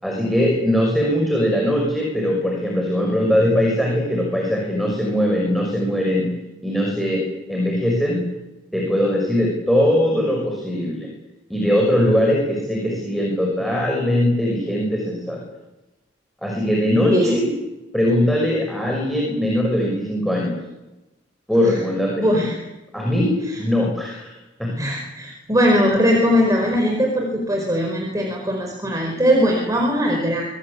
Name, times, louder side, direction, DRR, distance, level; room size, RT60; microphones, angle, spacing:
voice 1, 0.0-6.3 6.6-8.3 8.7-11.1 11.5-15.4 16.4-17.5 17.9-20.5 21.5-22.5 22.9-24.3 24.6-24.7, left 1 dB, ahead, -1 dB, 6.3 m, -20 dB
voice 2, 22.1-22.6 23.5-23.6 24.8-30.5, equal, 20° right, 1 dB, 4.8 m, -20 dB
26.0 x 20.5 x 8.6 m, 1.0 s
head